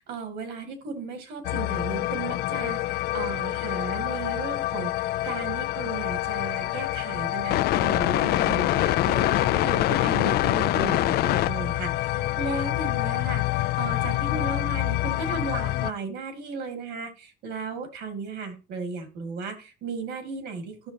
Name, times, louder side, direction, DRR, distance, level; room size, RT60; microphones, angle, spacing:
voice 1, 0.0-20.9, right 4 dB, 80° right, 2.6 m, -35 dB
sound 1, 1.4-15.9, left 16 dB, 70° left, 0.4 m, -26 dB
12.5 x 6.4 x 2.9 m
cardioid pair, 110°, 17 cm